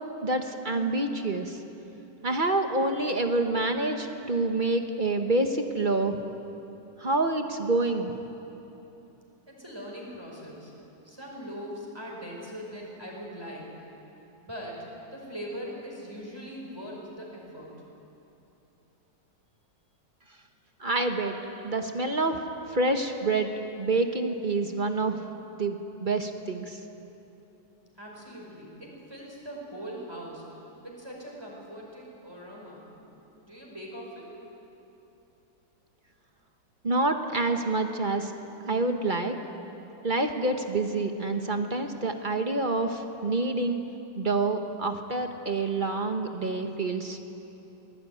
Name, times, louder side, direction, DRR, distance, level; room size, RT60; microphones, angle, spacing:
voice 1, 0.2-1.6 2.2-6.2 7.0-8.1 20.8-21.3 21.6-22.4 22.7-23.5 23.8-25.2 25.6-26.8 36.8-38.3 38.7-39.3 40.0-43.8 44.2-47.2, right 2 dB, 30° right, 5 dB, 1.2 m, -27 dB
voice 2, 9.5-10.7 11.0-13.7 14.4-14.8 15.1-17.7 28.0-30.4 30.8-32.9 33.4-34.3, equal, 15° right, -2 dB, 5.4 m, -41 dB
22.5 x 18.5 x 9.4 m, 3.0 s
omnidirectional pair, 2.0 m